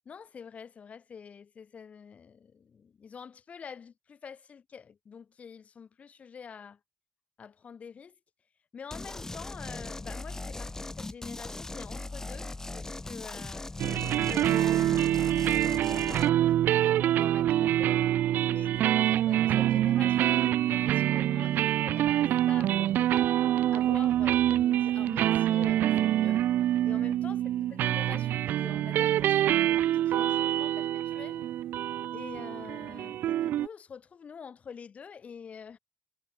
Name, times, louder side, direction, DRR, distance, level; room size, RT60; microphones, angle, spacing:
voice 1, 0.1-6.8 7.4-8.1 8.7-12.5 12.7-13.6 14.2-18.1 18.5-23.3 23.7-26.5 26.8-31.5 32.1-35.8, left 6 dB, 45° left, 2.5 m, -46 dB
sound 1, 8.9-16.3, left 2 dB, 15° left, 2.1 m, -39 dB
sound 2, 13.8-33.7, right 12 dB, 85° right, 0.5 m, -26 dB
cardioid pair, 120°, 3 cm